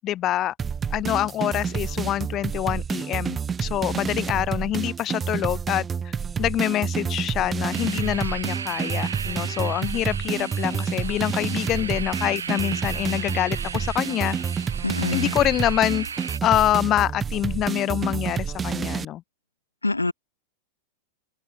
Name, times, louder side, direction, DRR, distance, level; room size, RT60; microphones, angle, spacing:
voice 1, 0.0-0.5 0.9-6.1 6.4-14.4 15.1-16.1 16.4-19.2, left 13 dB, 30° left, 0.7 m, -25 dB
sound 1, 0.6-19.1, right 6 dB, 20° right, 0.5 m, -29 dB
sound 2, 7.7-16.4, right 6 dB, 70° right, 1.2 m, -35 dB
voice 2, 14.8-15.3 19.8-20.1, left 2 dB, 85° left, 0.4 m, -25 dB
open air
figure-of-eight pair, 90°, 0 cm